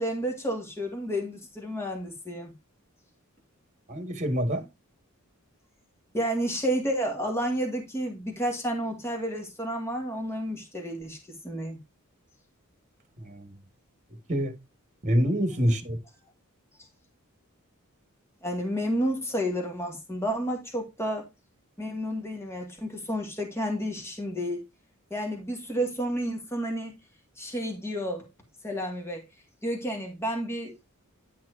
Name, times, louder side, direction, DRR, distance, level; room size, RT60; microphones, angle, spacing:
voice 1, 0.0-2.5 6.1-11.8 15.5-15.7 18.4-21.2 21.8-24.6 25.1-26.9 27.4-28.3 28.6-29.2 29.6-30.8, equal, 10° left, 2.2 m, -31 dB
voice 2, 3.9-4.7 13.2-13.5 14.3-14.6 15.0-16.0, equal, 35° right, 1.9 m, -26 dB
10.5 x 6.0 x 2.8 m
head